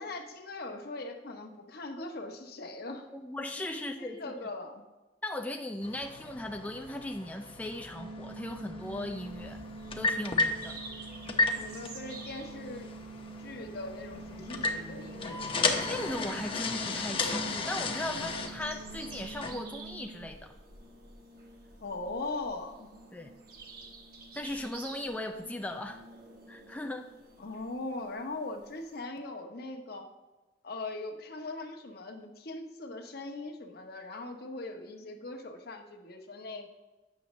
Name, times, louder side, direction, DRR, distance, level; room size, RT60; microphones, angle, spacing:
voice 1, 0.0-3.1 3.7-4.8 11.6-12.9 13.4-15.4 21.8-22.9 27.4-30.1 30.6-36.7, left 2 dB, 60° left, 4 dB, 0.9 m, -40 dB
voice 2, 3.1-4.3 5.2-9.6 10.0-10.8 15.8-20.5 23.1-23.3 24.3-26.0 26.5-27.1, left 1 dB, 10° left, 4 dB, 0.3 m, -38 dB
sound 1, 5.8-19.5, left 3 dB, 30° left, 0.7 m, -35 dB
sound 2, 8.0-20.3, right 3 dB, 85° right, 0.6 m, -46 dB
sound 3, 9.2-29.0, right 2 dB, 60° right, 1.1 m, -51 dB
8.4 x 6.2 x 3.1 m, 1.2 s
head